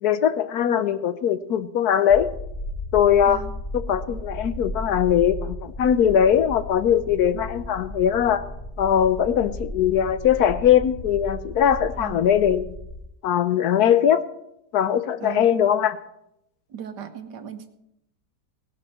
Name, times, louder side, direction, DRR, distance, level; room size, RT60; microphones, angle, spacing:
voice 1, 0.0-2.3 2.9-3.4 3.7-8.4 8.8-12.7 13.2-14.2 14.7-16.0, left 9 dB, 70° left, 13 dB, 1.2 m, -20 dB
sound 1, 2.1-13.0, left 1 dB, 25° left, 0.7 m, -35 dB
voice 2, 16.7-17.7, right 9 dB, 75° right, 8 dB, 1.7 m, -37 dB
17.5 x 11.0 x 4.3 m, 0.81 s
omnidirectional pair, 1.9 m